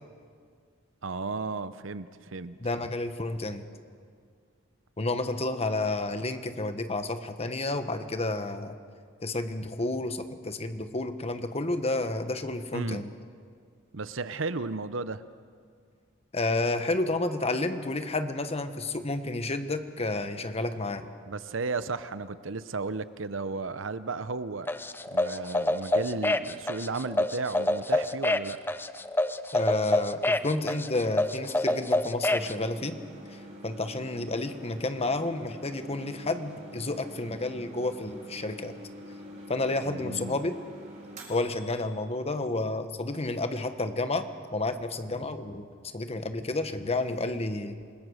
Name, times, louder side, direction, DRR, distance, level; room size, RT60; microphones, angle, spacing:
voice 1, 1.0-2.6 12.7-13.0 13.9-15.2 21.2-24.7 25.1-28.8 39.9-40.5, right 3 dB, 70° right, 14 dB, 0.8 m, -34 dB
voice 2, 2.6-3.7 5.0-8.8 9.2-13.1 16.3-21.1 29.5-32.9 33.3-38.7 39.5-40.6 41.3-44.3 44.5-45.7 45.9-47.8, left 2 dB, 30° left, 9 dB, 1.3 m, -30 dB
sound 1, 24.7-32.5, left 1 dB, 10° left, 0.6 m, -27 dB
sound 2, 32.3-42.0, equal, 35° right, 4.3 m, -46 dB
28.0 x 20.5 x 6.5 m, 2.1 s
head